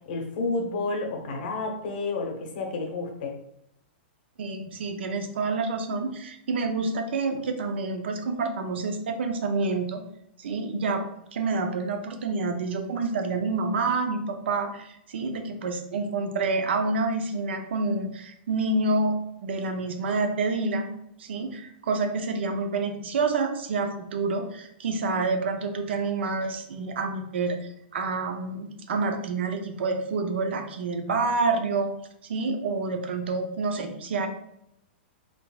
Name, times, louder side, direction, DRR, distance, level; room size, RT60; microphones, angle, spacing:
voice 1, 0.1-3.4 33.4-33.5, left 3 dB, 55° left, 3 dB, 0.9 m, -30 dB
voice 2, 4.4-10.0 10.4-11.0 11.3-19.2 19.4-20.9 21.2-31.9 32.2-34.3, right 3 dB, 80° right, 5 dB, 0.6 m, -28 dB
3.8 x 3.4 x 2.3 m, 0.78 s
supercardioid pair, 160°, 6 cm